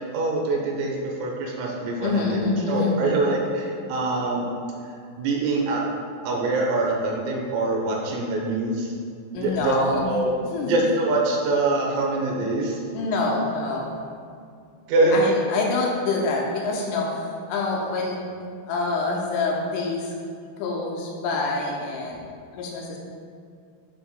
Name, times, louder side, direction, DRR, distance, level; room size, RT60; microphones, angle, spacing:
voice 1, 0.1-4.5 5.2-5.8 6.2-8.9 9.3-10.3 10.6-12.8 14.9-15.2, right 2 dB, 85° right, -1 dB, 3.7 m, -24 dB
voice 2, 2.0-3.0 9.3-10.2 10.5-10.9 12.9-13.9 15.1-18.2 18.7-20.1 20.6-22.2 22.5-23.0, left 3 dB, 80° left, -2 dB, 3.0 m, -26 dB
9.7 x 6.4 x 2.2 m, 2.3 s
omnidirectional pair, 6.0 m